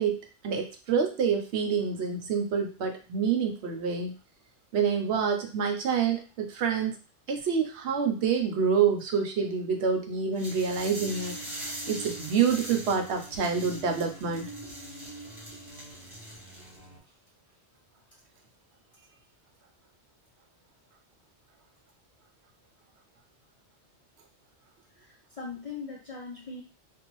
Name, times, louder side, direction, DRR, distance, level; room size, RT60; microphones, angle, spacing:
voice 1, 0.0-4.1 4.7-7.0 7.3-11.4 11.9-14.5, right 6 dB, 75° right, 4 dB, 0.9 m, -27 dB
sound 1, 10.3-16.8, right 1 dB, 30° right, 1.0 m, -42 dB
sound 2, 10.5-17.0, right 1 dB, 75° left, 1.1 m, -46 dB
voice 2, 24.9-26.6, left 4 dB, 45° left, -3 dB, 0.5 m, -41 dB
2.6 x 2.3 x 3.0 m, 0.33 s
omnidirectional pair, 1.2 m